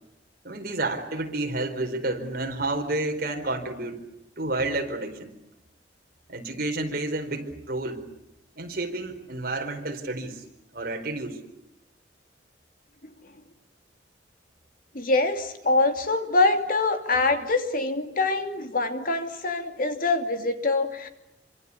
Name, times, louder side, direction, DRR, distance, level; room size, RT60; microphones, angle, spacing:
voice 1, 0.4-4.0 4.4-5.3 6.3-8.1 8.6-10.4 10.7-11.4, right 2 dB, 55° right, 5 dB, 4.5 m, -30 dB
voice 2, 14.9-21.1, left 3 dB, 50° left, 7 dB, 2.8 m, -24 dB
27.0 x 25.5 x 8.5 m, 0.85 s
head